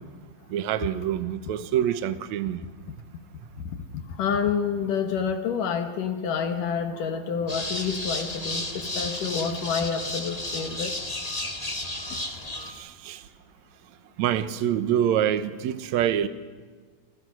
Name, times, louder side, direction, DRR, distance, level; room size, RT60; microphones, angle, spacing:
voice 1, 0.5-2.6 12.8-13.2 14.2-16.3, right 10 dB, 70° right, 12 dB, 1.7 m, -26 dB
voice 2, 3.7-11.1 12.1-12.2, left 6 dB, 60° left, 7 dB, 2.8 m, -28 dB
sound 1, 7.5-12.7, left 1 dB, 15° left, 1.5 m, -33 dB
28.0 x 27.5 x 6.3 m, 1.5 s
omnidirectional pair, 4.6 m